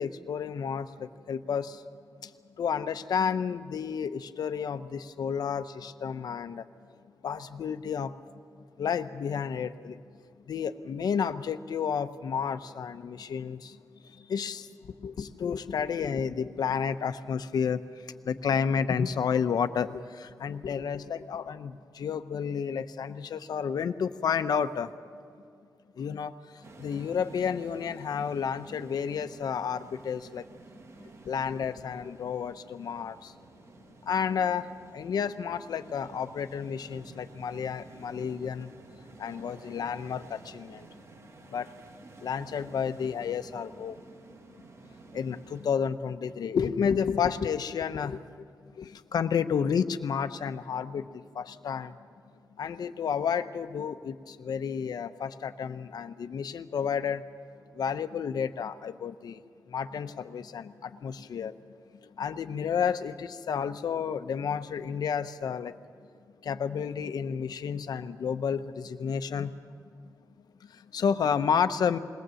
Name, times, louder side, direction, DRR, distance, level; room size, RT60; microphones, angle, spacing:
voice 1, 0.0-1.8 2.2-2.3 2.6-6.7 7.2-8.1 8.8-10.0 10.5-13.8 14.0-14.7 15.0-24.9 26.0-30.4 31.2-33.3 34.0-40.9 41.5-41.7 42.2-44.0 45.1-48.2 48.8-52.0 52.6-57.2 57.7-59.4 59.7-61.5 62.0-65.7 66.4-69.5 70.7-72.0, left 7 dB, 80° left, 10 dB, 0.8 m, -31 dB
sound 1, 26.6-45.7, right 3 dB, 45° right, 1.0 m, -52 dB
21.5 x 18.0 x 7.7 m, 2.2 s
wide cardioid pair, 175°, 7 cm